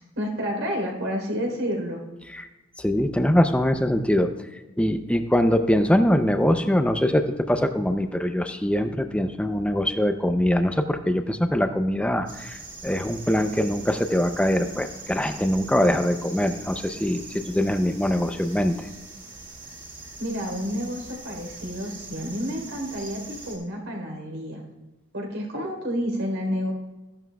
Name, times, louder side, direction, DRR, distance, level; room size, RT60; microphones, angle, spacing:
voice 1, 0.1-2.0 20.2-24.6 25.1-26.7, equal, 75° right, 0 dB, 3.6 m, -30 dB
voice 2, 2.8-4.3 4.8-18.9, equal, 5° left, 8 dB, 0.5 m, -23 dB
sound 1, 12.3-23.6, right 3 dB, 20° right, 2.7 m, -42 dB
15.0 x 11.0 x 2.3 m, 1.0 s
head